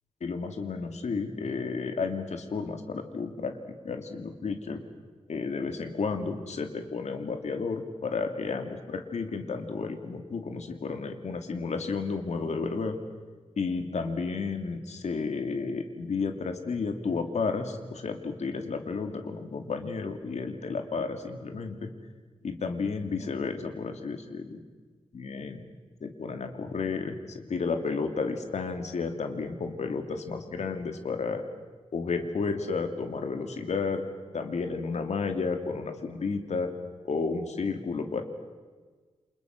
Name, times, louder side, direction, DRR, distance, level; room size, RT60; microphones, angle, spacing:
voice 1, 0.2-3.6 3.8-4.8 5.3-13.0 13.6-21.9 22.4-24.6 25.1-25.6 26.0-31.4 31.9-34.0 34.3-36.7 37.0-38.2, left 4 dB, 70° left, 6 dB, 2.8 m, -32 dB
30.0 x 27.0 x 6.2 m, 1.4 s
wide cardioid pair, 125°, 12 cm